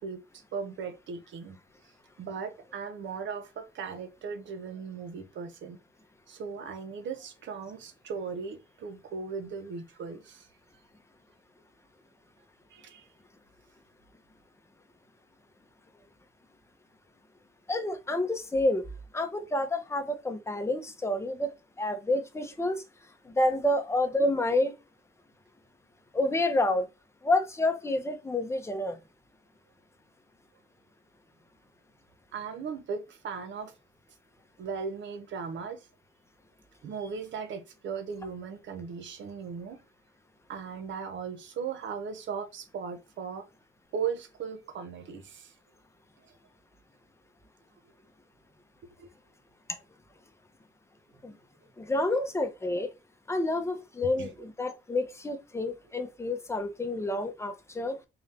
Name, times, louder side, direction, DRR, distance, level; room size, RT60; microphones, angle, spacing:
voice 1, 0.0-1.6 2.2-5.8 6.3-10.5 12.7-13.1 32.3-33.7 34.6-35.9 36.8-39.8 40.5-43.5 43.9-45.5 49.0-49.1 51.3-51.4 54.2-54.3, right 6 dB, 70° right, 0.9 m, -37 dB
voice 2, 17.7-18.8 19.1-22.8 23.2-24.7 26.1-26.9 27.2-29.0 51.2-51.3 51.8-52.9 53.3-58.0, left 1 dB, 15° left, 0.8 m, -29 dB
3.9 x 2.7 x 3.3 m
cardioid pair, 90°, 20 cm